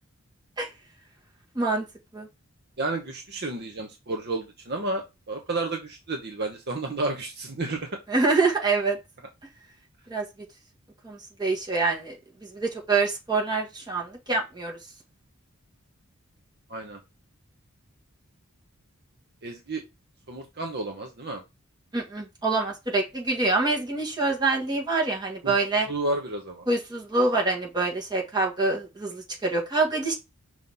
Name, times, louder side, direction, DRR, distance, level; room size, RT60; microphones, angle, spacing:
voice 1, 2.8-7.9 16.7-17.0 19.4-19.8 20.3-21.4 25.4-25.5 25.9-26.7, right 2 dB, 50° right, 3 dB, 1.0 m, -31 dB
voice 2, 8.1-9.0 10.1-10.2 11.0-12.2 12.4-14.8 21.9-25.9 26.7-30.1, right 3 dB, 20° right, -2 dB, 1.9 m, -25 dB
5.7 x 3.1 x 5.4 m, 0.24 s
head